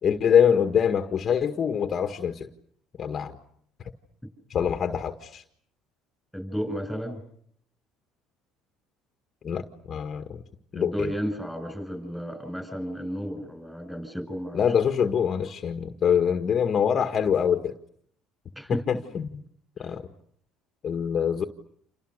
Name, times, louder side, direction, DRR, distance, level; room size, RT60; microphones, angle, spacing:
voice 1, 0.0-2.5 3.0-3.4 4.5-5.4 9.4-10.4 10.7-11.1 14.5-17.7 18.7-19.4 19.8-20.0 20.8-21.4, left 8 dB, 40° left, 6 dB, 1.8 m, -24 dB
voice 2, 6.3-7.2 10.8-14.6 18.6-18.8 19.8-19.9, equal, ahead, 9 dB, 7.9 m, -33 dB
28.5 x 28.5 x 6.7 m, 0.66 s
cardioid pair, 110°, 0 cm